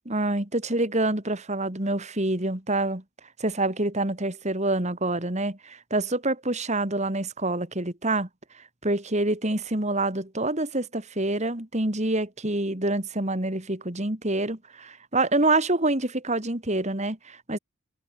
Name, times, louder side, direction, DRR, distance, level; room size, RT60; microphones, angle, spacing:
voice 1, 0.1-3.0 3.4-8.3 8.5-17.6, right 2 dB, 30° right, 2.6 m, -26 dB
head